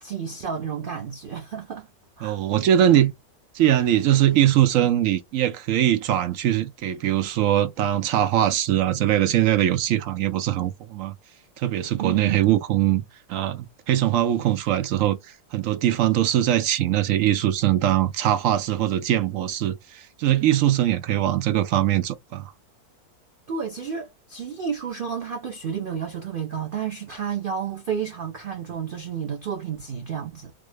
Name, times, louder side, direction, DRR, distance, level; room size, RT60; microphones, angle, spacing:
voice 1, 0.0-1.9 2.2-2.4 12.0-12.5 23.5-30.5, right 7 dB, 90° right, 0.4 m, -31 dB
voice 2, 2.2-3.1 3.5-11.1 11.6-13.0 13.3-15.2 15.5-22.5, right 12 dB, 65° right, 0.8 m, -21 dB
3.4 x 2.0 x 3.2 m
omnidirectional pair, 1.7 m